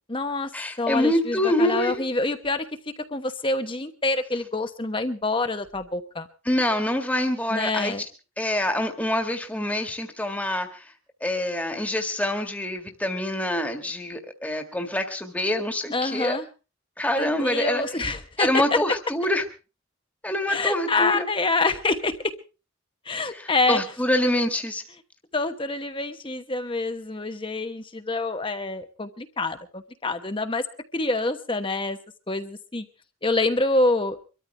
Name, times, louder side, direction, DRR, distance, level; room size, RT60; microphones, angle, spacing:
voice 1, 0.0-0.5 0.8-2.7 3.1-6.3 7.5-8.0 15.9-16.5 17.1-18.8 20.5-22.3 23.0-23.8 25.3-30.7 30.9-32.0 32.3-32.9 33.2-34.2, left 2 dB, 25° left, 8 dB, 1.1 m, -26 dB
voice 2, 0.5-2.0 6.5-7.9 8.4-10.8 11.2-16.4 17.0-17.8 18.4-19.4 20.2-21.2 23.7-24.8, left 1 dB, 5° left, 4 dB, 1.8 m, -25 dB
24.5 x 13.5 x 3.4 m, 0.33 s
head